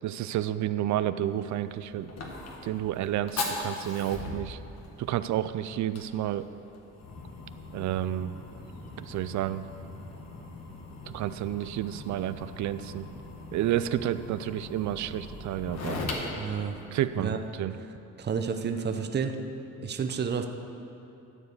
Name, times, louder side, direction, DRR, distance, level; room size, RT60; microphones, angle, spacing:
voice 1, 0.0-2.1 2.6-4.6 5.0-6.5 7.7-8.3 9.0-9.7 11.1-13.1 13.5-16.0 16.9-17.3 17.6-17.7, right 12 dB, 70° right, 13 dB, 0.5 m, -30 dB
Fire, 1.3-17.5, left 3 dB, 60° left, 1.6 m, -40 dB
voice 2, 16.3-16.8 17.2-17.4 18.2-19.4 19.8-20.5, right 6 dB, 35° right, 6 dB, 0.7 m, -30 dB
12.5 x 4.8 x 8.2 m, 2.8 s
cardioid pair, 90°, 30 cm